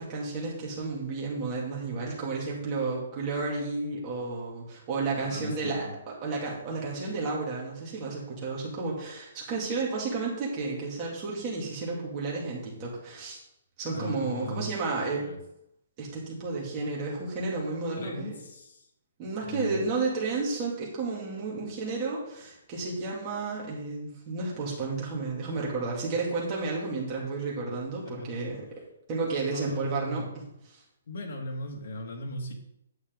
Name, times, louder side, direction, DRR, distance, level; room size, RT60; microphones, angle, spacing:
voice 1, 0.0-13.4 13.8-15.2 16.0-18.4 19.2-28.8 29.1-30.4 30.7-30.8, right 3 dB, 20° right, -4 dB, 3.0 m, -32 dB
voice 2, 5.2-5.9 13.9-14.7 15.2-15.4 18.0-18.9 19.4-19.8 28.0-28.3 29.5-30.3 31.1-32.6, equal, 60° left, 0 dB, 2.4 m, -38 dB
9.7 x 8.0 x 4.1 m, 0.80 s
hypercardioid pair, 170°, 0 cm